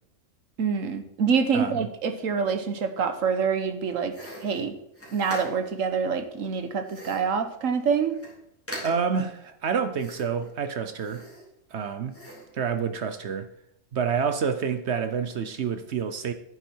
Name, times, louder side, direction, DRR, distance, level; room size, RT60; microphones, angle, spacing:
voice 1, 0.6-4.1 4.4-4.7 5.1-8.2, right 6 dB, 85° right, 8 dB, 1.5 m, -26 dB
voice 2, 1.5-1.9 8.8-11.2 11.7-12.1 12.5-13.5 13.9-16.3, right 6 dB, 60° right, 9 dB, 1.0 m, -28 dB
sound 1, 4.1-5.8 6.8-7.4 7.8-7.9 8.1-8.4 8.7-9.2 9.9-10.5 10.9-11.7 12.1-12.6, equal, 10° left, 3.5 m, -41 dB
10.0 x 9.2 x 4.5 m, 0.76 s
omnidirectional pair, 1.3 m